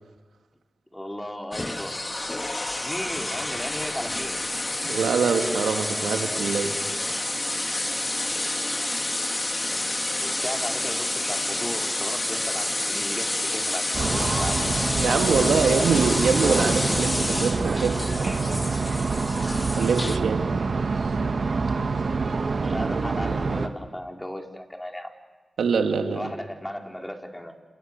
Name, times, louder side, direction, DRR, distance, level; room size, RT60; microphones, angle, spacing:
voice 1, 0.9-1.9 2.8-4.4 10.2-14.6 15.1-15.6 22.6-25.1 26.1-27.5, left 1 dB, 15° left, 2 dB, 4.5 m, -35 dB
sound 1, 1.5-20.2, left 2 dB, 30° left, 2.1 m, -29 dB
voice 2, 4.8-6.8 15.0-18.8 19.7-20.5 21.0-21.1 25.6-26.3, right 5 dB, 90° right, 4 dB, 2.6 m, -24 dB
sound 2, 13.9-23.7, right 4 dB, 65° right, 1.8 m, -26 dB
30.0 x 28.5 x 6.9 m, 1.2 s
cardioid pair, 40°, 0 cm